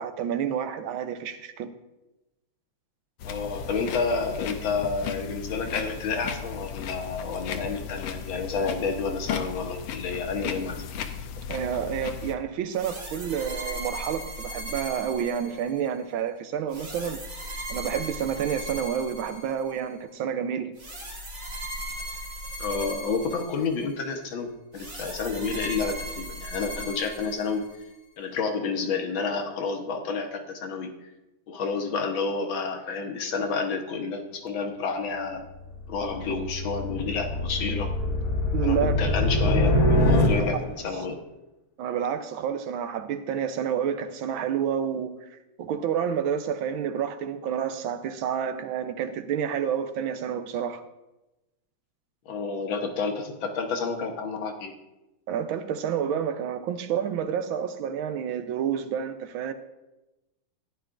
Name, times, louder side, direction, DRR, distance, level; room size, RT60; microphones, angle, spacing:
voice 1, 0.0-1.7 11.5-17.2 17.7-20.7 38.5-38.9 41.8-45.1 45.6-50.8 55.3-59.5, right 8 dB, 75° right, 1.5 m, -29 dB
sound 1, 3.2-12.4, left 7 dB, 85° left, 1.6 m, -36 dB
voice 2, 3.2-10.8 22.6-27.6 28.2-31.1 31.5-35.5 35.9-37.9 38.6-41.2 52.3-54.7, left 4 dB, 70° left, 1.8 m, -30 dB
sound 2, 12.7-15.9 16.7-19.8 20.8-23.9 24.7-27.8, equal, 40° right, 2.4 m, -38 dB
sound 3, 35.6-40.8, left 1 dB, 50° left, 1.7 m, -24 dB
15.0 x 10.0 x 2.5 m
omnidirectional pair, 2.3 m